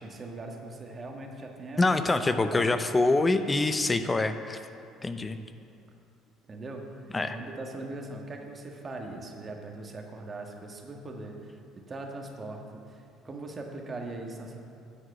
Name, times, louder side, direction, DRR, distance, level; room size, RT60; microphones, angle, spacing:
voice 1, 0.0-2.7 6.5-14.6, right 2 dB, 35° right, 2 dB, 1.5 m, -40 dB
voice 2, 1.8-4.6 5.0-5.4 7.1-7.4, left 2 dB, 25° left, 10 dB, 0.6 m, -25 dB
10.0 x 4.7 x 7.9 m, 2.6 s
hypercardioid pair, 65°, 0 cm